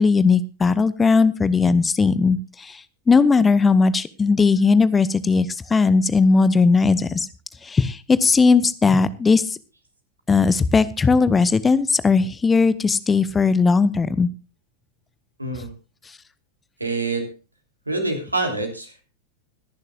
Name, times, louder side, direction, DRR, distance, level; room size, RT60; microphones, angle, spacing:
voice 1, 0.0-7.3 7.6-9.6 10.3-14.3, left 4 dB, 15° left, 17 dB, 0.8 m, -18 dB
voice 2, 15.4-15.7 16.8-17.3 17.9-19.0, right 2 dB, 85° right, 4 dB, 3.2 m, -26 dB
25.0 x 11.0 x 2.4 m, 0.31 s
figure-of-eight pair, 90°, 0 cm